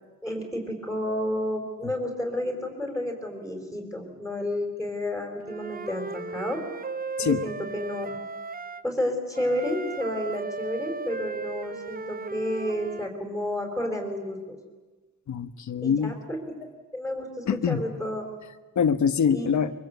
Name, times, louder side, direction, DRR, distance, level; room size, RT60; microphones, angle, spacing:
voice 1, 0.2-6.6 7.2-8.2 8.8-14.6 15.8-16.4 16.9-18.3 19.3-19.5, left 1 dB, 5° right, 1 dB, 4.2 m, -31 dB
Wind instrument woodwind instrument, 5.5-8.8 9.3-13.1, right 4 dB, 25° right, 0.8 m, -36 dB
voice 2, 15.3-16.1 17.5-17.8 18.8-19.7, left 7 dB, 60° left, 11 dB, 1.3 m, -24 dB
24.5 x 23.5 x 8.2 m, 1.3 s
wide cardioid pair, 125°, 33 cm